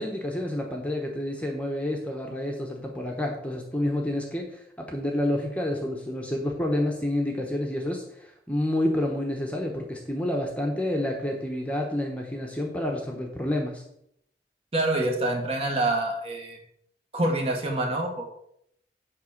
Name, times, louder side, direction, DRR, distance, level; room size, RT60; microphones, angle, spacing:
voice 1, 0.0-13.8, left 1 dB, 10° left, 1 dB, 1.1 m, -29 dB
voice 2, 14.7-16.6 17.1-18.3, right 1 dB, 35° right, 1 dB, 1.7 m, -26 dB
10.0 x 3.6 x 7.3 m, 0.73 s
head